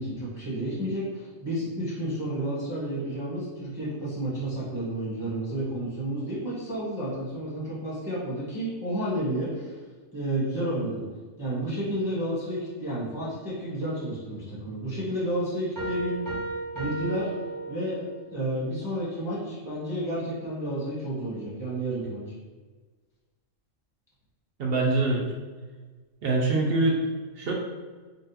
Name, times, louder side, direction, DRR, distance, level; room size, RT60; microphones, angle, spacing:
voice 1, 0.0-9.8 10.1-11.0 11.4-16.2 16.7-17.3 17.7-18.1 18.3-22.2, right 1 dB, ahead, -9 dB, 1.0 m, -31 dB
sound 1, 15.8-18.3, right 3 dB, 20° right, 0.7 m, -34 dB
voice 2, 24.6-25.3 26.2-27.0 27.4-27.5, right 3 dB, 60° right, -1 dB, 0.6 m, -24 dB
3.9 x 2.3 x 2.7 m, 1.4 s
omnidirectional pair, 1.4 m